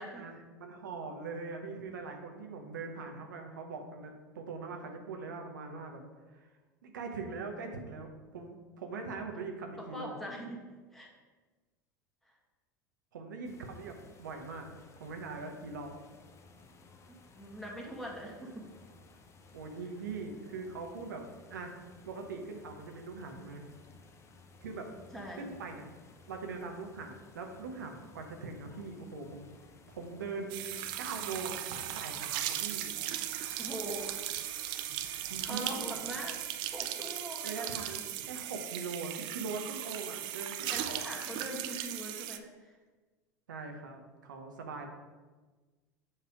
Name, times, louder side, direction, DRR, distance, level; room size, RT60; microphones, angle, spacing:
voice 1, 0.2-6.0 6.3-6.5 6.8-10.1 13.1-14.7 15.0-15.9 19.5-21.8 22.1-23.7 24.6-24.9 25.4-25.9 26.3-29.5 29.9-30.7 31.0-32.9 35.3-36.0 37.4-41.0 43.5-44.9, right 4 dB, 75° right, 3 dB, 0.8 m, -42 dB
voice 2, 9.8-10.6 10.9-11.1 12.2-12.3 17.4-18.7 25.1-25.5 33.6-34.4 35.0-37.8 40.7-42.7, equal, 5° left, -2 dB, 1.6 m, -42 dB
sound 1, 13.4-32.2, left 3 dB, 30° left, 0.7 m, -57 dB
sound 2, 30.5-42.4, right 12 dB, 50° right, 0.4 m, -37 dB
sound 3, 31.7-36.8, left 1 dB, 65° left, 0.9 m, -58 dB
7.2 x 3.3 x 5.0 m, 1.3 s
figure-of-eight pair, 80°, 10 cm